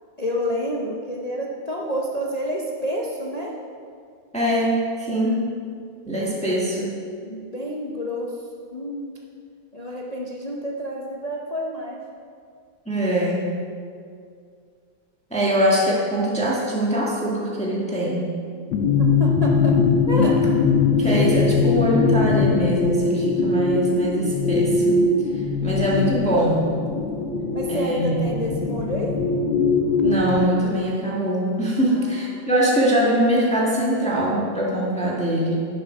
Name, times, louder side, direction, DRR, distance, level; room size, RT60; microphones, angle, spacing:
voice 1, 0.2-3.5 6.6-6.7 7.2-8.3 8.7-9.1 9.7-12.0 19.0-19.7 20.1-20.3 21.0-21.6 27.5-29.2 31.9-32.5, equal, 55° left, -3 dB, 0.4 m, -29 dB
voice 2, 4.3-5.5 6.0-6.9 12.8-13.5 15.3-18.2 20.1-20.3 21.0-25.0 25.6-26.7 27.7-28.4 30.0-35.7, equal, 5° left, -5 dB, 1.5 m, -22 dB
sound 1, 18.7-30.4, left 4 dB, 75° left, 1.4 m, -21 dB
10.5 x 6.5 x 5.9 m, 2.3 s
omnidirectional pair, 2.1 m